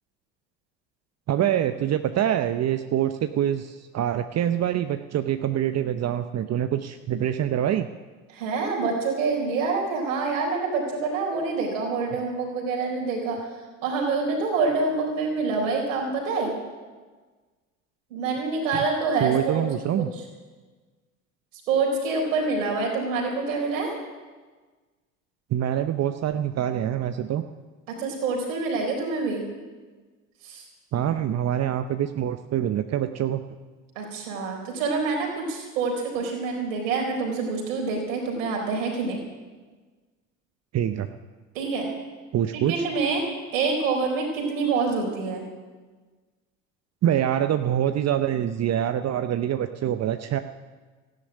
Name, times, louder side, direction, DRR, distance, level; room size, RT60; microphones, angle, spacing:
voice 1, 1.3-7.9 18.7-18.9 19.2-20.1 25.5-27.4 30.9-33.4 40.7-41.1 42.3-42.8 47.0-50.4, right 10 dB, 40° right, 9 dB, 0.8 m, -25 dB
voice 2, 8.3-13.4 13.8-16.5 18.1-19.7 20.0-20.1 21.7-23.9 27.9-29.4 30.4-30.6 34.0-39.2 41.5-41.9 42.5-45.4, right 4 dB, 80° right, -1 dB, 4.3 m, -26 dB
13.5 x 10.5 x 9.9 m, 1.4 s
hypercardioid pair, 65°, 38 cm